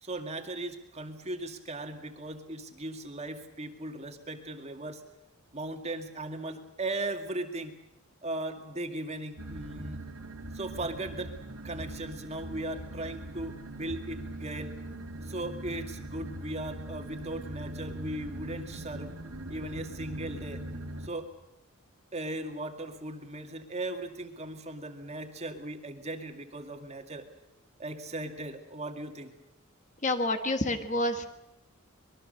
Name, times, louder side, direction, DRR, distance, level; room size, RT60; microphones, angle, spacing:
voice 1, 0.0-5.0 5.5-7.7 8.2-10.0 10.5-11.3 11.6-14.7 15.2-19.1 19.5-20.6 21.0-21.3 22.1-27.2 27.8-29.3, right 2 dB, 30° right, 5 dB, 2.1 m, -38 dB
sound 1, 9.4-21.1, right 1 dB, 85° right, 2.5 m, -41 dB
voice 2, 30.0-31.3, left 2 dB, 35° left, 7 dB, 1.6 m, -28 dB
25.0 x 21.5 x 6.6 m, 0.88 s
head